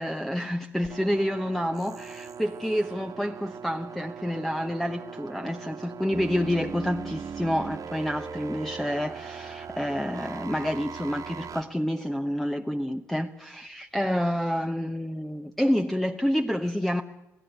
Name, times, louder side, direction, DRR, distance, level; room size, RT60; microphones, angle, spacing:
voice 1, 0.0-17.0, equal, 5° left, 1.0 m, -28 dB
sound 1, 0.8-11.6, right 6 dB, 50° right, 1.8 m, -39 dB
28.0 x 17.0 x 8.3 m
hypercardioid pair, 50°, 8 cm